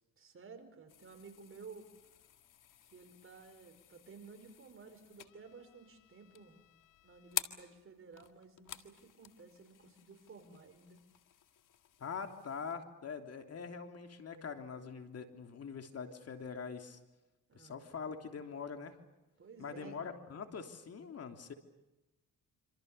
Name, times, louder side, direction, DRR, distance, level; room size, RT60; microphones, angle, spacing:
voice 1, 0.2-1.9 2.9-6.6 7.0-11.0 17.5-17.8 19.4-20.0, right 4 dB, 40° right, 6 dB, 5.1 m, -54 dB
sound 1, 0.9-12.8, left 11 dB, 70° left, 2.0 m, -49 dB
voice 2, 12.0-17.0 17.5-19.0 19.6-21.5, left 6 dB, 45° left, 5 dB, 3.2 m, -44 dB
27.0 x 27.0 x 6.9 m, 1.0 s
cardioid pair, 100°, 33 cm